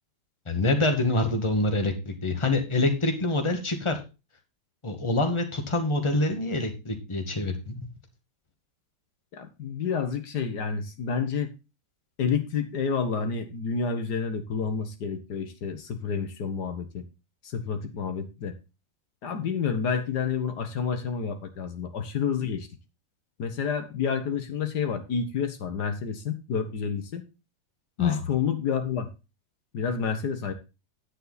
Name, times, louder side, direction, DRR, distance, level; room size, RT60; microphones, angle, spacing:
voice 1, 0.5-4.0 4.8-7.9 28.0-28.2, left 2 dB, 15° left, 4 dB, 1.8 m, -26 dB
voice 2, 9.3-11.5 12.2-17.0 17.4-18.5 19.2-22.7 23.4-27.2 28.0-29.1 29.7-30.5, left 6 dB, 70° left, 7 dB, 1.8 m, -29 dB
9.8 x 8.3 x 4.0 m, 0.29 s
omnidirectional pair, 1.8 m